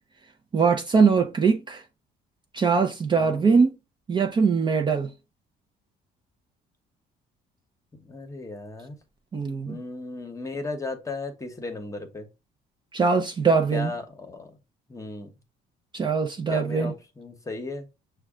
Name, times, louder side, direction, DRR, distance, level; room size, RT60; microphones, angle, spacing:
voice 1, 0.5-1.8 2.5-3.7 4.1-5.1 9.3-9.8 12.9-13.9 15.9-16.9, right 5 dB, 25° right, 0.5 m, -22 dB
voice 2, 3.2-3.5 8.0-9.0 9.6-12.3 13.7-14.6 14.9-15.3 16.5-17.9, left 3 dB, 20° left, 0.9 m, -36 dB
6.0 x 2.2 x 3.6 m
cardioid pair, 110°, 17 cm